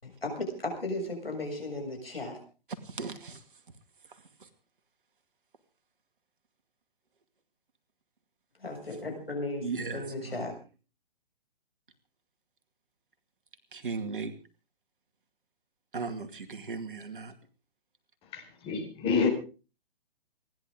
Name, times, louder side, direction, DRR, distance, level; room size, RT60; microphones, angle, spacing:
voice 1, 0.0-2.4 8.6-9.6 9.9-10.6, left 2 dB, 80° left, 6.9 m, -35 dB
voice 2, 2.8-3.4 9.6-10.4 13.7-14.3 15.9-17.3, right 4 dB, 60° right, 2.5 m, -36 dB
voice 3, 18.2-19.3, left 5 dB, 20° left, 4.6 m, -28 dB
29.0 x 11.0 x 3.8 m
figure-of-eight pair, 125°, 29 cm